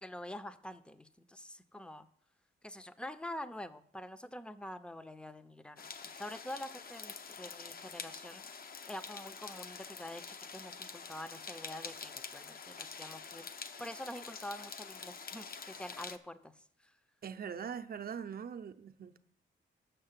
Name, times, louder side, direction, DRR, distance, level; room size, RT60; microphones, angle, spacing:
voice 1, 0.0-2.1 2.6-8.6 8.9-13.5 13.8-16.9, left 1 dB, 5° left, 0.6 m, -46 dB
sound 1, 5.8-16.2, left 5 dB, 45° left, 0.8 m, -47 dB
voice 2, 17.2-19.2, right 7 dB, 45° right, 0.7 m, -42 dB
6.8 x 6.2 x 7.4 m
cardioid pair, 75°, 21 cm